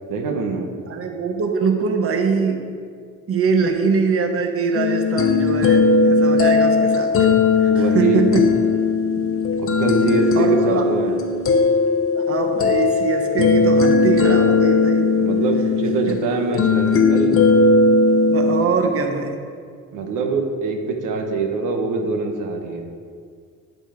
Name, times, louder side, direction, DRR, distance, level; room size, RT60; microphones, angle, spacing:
voice 1, 0.1-0.7 7.7-8.3 9.6-11.2 15.2-17.4 19.9-22.9, right 4 dB, 90° right, 3 dB, 1.3 m, -23 dB
voice 2, 0.9-2.7 3.3-7.3 7.6-8.5 10.4-10.8 12.1-15.1 16.1-16.2 18.3-19.4, right 4 dB, 50° right, 4 dB, 1.1 m, -22 dB
sound 1, 4.7-18.7, left 4 dB, 45° left, 0.8 m, -18 dB
9.7 x 6.2 x 5.1 m, 2.2 s
cardioid pair, 90°, 30 cm